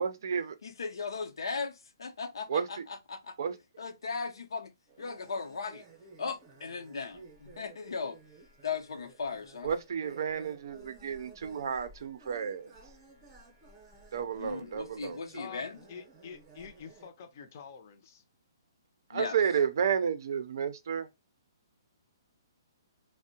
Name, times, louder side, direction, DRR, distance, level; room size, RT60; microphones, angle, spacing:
voice 1, 0.0-0.6 2.5-2.8 3.4-3.6 9.6-12.7 14.1-15.4 19.1-21.1, right 7 dB, 55° right, 0.5 m, -31 dB
voice 2, 0.6-3.4 3.8-5.8 6.2-8.2 8.6-9.7 14.4-15.8 19.1-19.4, left 5 dB, 90° left, 0.7 m, -37 dB
sound 1, 4.9-17.1, right 3 dB, 20° right, 0.7 m, -55 dB
voice 3, 15.4-18.2, left 6 dB, 35° left, 0.6 m, -47 dB
3.4 x 2.1 x 2.7 m
hypercardioid pair, 165°, 2 cm